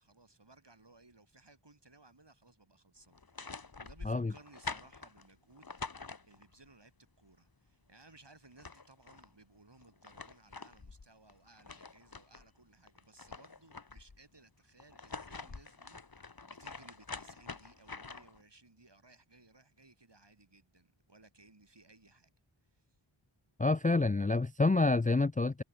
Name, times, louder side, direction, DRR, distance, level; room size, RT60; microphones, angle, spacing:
voice 1, 0.0-22.3 22.7-22.8, right 2 dB, 55° right, 6.1 m, -61 dB
sound 1, 3.1-6.7 8.1-8.2 8.4-9.3 9.8-12.5 12.9-14.2 14.8-18.4, left 4 dB, 45° left, 1.5 m, -46 dB
voice 2, 23.6-25.6, left 3 dB, 15° left, 0.4 m, -28 dB
wide cardioid pair, 45°, 49 cm